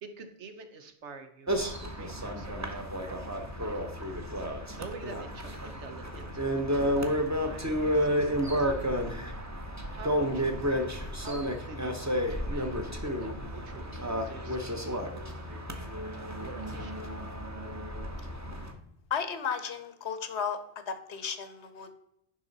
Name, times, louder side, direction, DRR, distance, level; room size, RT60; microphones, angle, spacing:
voice 1, 0.0-4.2 4.5-8.9 9.2-9.4 9.9-10.6 11.1-15.6 15.9-17.0, right 5 dB, 75° right, 8 dB, 1.3 m, -48 dB
sound 1, 1.5-18.7, equal, 15° right, 0.9 m, -31 dB
voice 2, 19.1-20.6 20.9-21.9, left 7 dB, 70° left, 10 dB, 1.1 m, -34 dB
10.5 x 5.5 x 4.0 m, 0.82 s
omnidirectional pair, 1.2 m